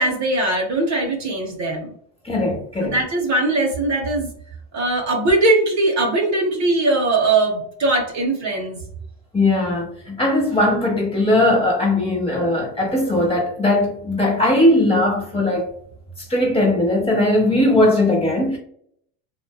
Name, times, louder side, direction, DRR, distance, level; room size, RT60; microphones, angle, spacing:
voice 1, 0.0-1.9 2.8-4.3 4.7-8.8, right 2 dB, 40° right, 1 dB, 0.6 m, -20 dB
voice 2, 2.2-3.0 9.3-15.7 16.2-18.6, left 1 dB, 15° left, -2 dB, 0.9 m, -19 dB
2.6 x 2.1 x 2.2 m, 0.65 s
supercardioid pair, 110°, 42 cm